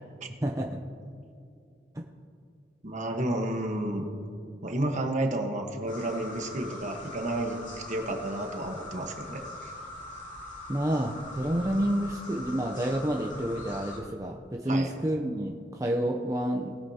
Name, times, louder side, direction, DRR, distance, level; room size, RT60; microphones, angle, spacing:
voice 1, 0.4-0.8 10.7-16.8, right 1 dB, 20° right, 1 dB, 0.6 m, -29 dB
voice 2, 2.8-4.1 4.6-9.7 14.7-15.0, right 1 dB, 40° right, 3 dB, 1.2 m, -31 dB
sound 1, 5.9-14.0, left 1 dB, 40° left, 2.3 m, -42 dB
19.5 x 8.6 x 2.8 m, 2.5 s
head